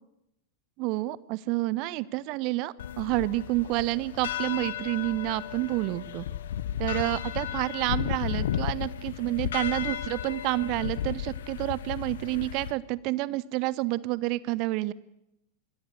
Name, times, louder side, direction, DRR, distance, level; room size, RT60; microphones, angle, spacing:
voice 1, 0.8-6.2 6.8-14.9, right 19 dB, 40° right, 21 dB, 0.8 m, -29 dB
sound 1, 2.8-12.7, left 10 dB, 60° left, 1.1 m, -34 dB
26.5 x 21.5 x 6.7 m, 0.86 s
figure-of-eight pair, 90°, 0 cm